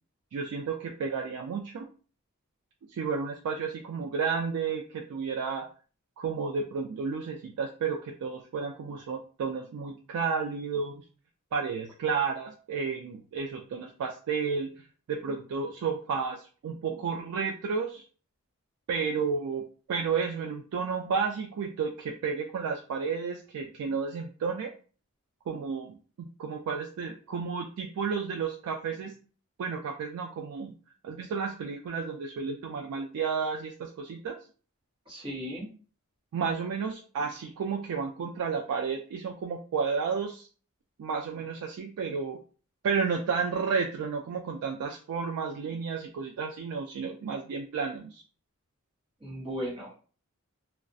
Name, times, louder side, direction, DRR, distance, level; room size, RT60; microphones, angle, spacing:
voice 1, 0.3-1.9 2.9-5.7 6.2-11.0 11.5-18.0 18.9-24.7 25.5-29.1 29.6-30.7 31.0-34.3 36.3-40.5 41.0-42.4 42.8-48.2, right 5 dB, 85° right, 2 dB, 0.3 m, -32 dB
voice 2, 35.1-35.7 49.2-49.9, equal, 20° right, -5 dB, 0.9 m, -36 dB
2.3 x 2.1 x 2.5 m, 0.39 s
head